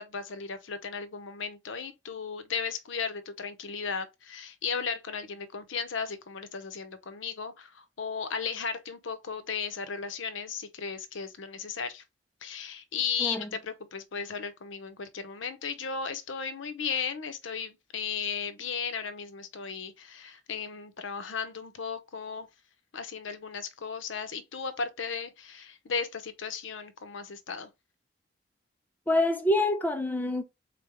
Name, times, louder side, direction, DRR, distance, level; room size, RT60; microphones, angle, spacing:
voice 1, 0.0-12.0 12.4-22.5 22.9-27.7, left 6 dB, 80° left, 0.7 m, -35 dB
voice 2, 29.1-30.4, left 1 dB, 10° left, 0.5 m, -26 dB
3.7 x 3.4 x 3.4 m
head